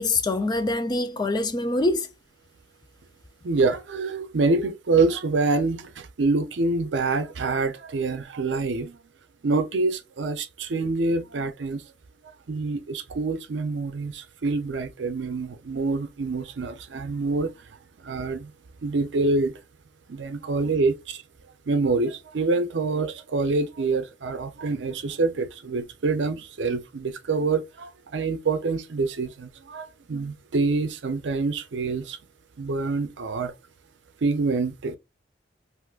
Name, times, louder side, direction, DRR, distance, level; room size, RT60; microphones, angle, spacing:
voice 1, 0.0-2.1, left 2 dB, 25° left, 0.4 m, -24 dB
voice 2, 3.4-9.0 9.4-11.8 12.5-17.5 18.0-18.5 18.8-19.5 20.1-21.2 21.7-32.2 32.6-33.5 34.2-35.0, right 3 dB, 75° right, 0.5 m, -26 dB
3.5 x 2.5 x 2.3 m
head